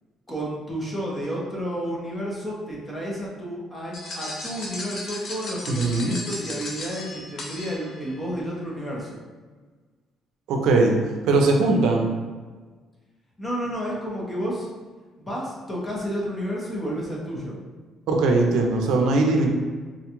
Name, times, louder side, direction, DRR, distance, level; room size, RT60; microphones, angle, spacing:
voice 1, 0.3-9.2 13.4-14.7 15.2-17.6, equal, 10° left, -4 dB, 0.8 m, -31 dB
sound 1, 3.9-8.2, left 2 dB, 50° left, 0.6 m, -36 dB
voice 2, 5.7-6.2 10.5-10.9 11.3-12.1 18.1-19.5, right 3 dB, 80° right, 1 dB, 0.5 m, -20 dB
3.7 x 2.3 x 2.9 m, 1.4 s
cardioid pair, 125°, 0 cm